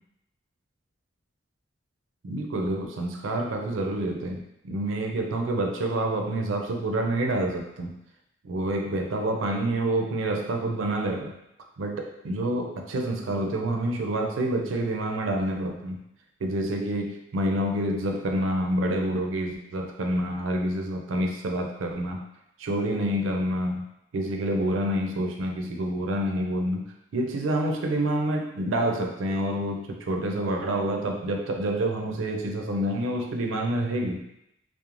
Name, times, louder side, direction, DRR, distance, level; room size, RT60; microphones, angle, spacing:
voice 1, 2.2-7.9 8.4-11.3 11.8-16.0 16.4-22.2 22.6-23.8 24.1-26.8 27.1-34.2, right 1 dB, 75° right, 2 dB, 0.4 m, -27 dB
2.4 x 2.0 x 3.0 m, 0.83 s
head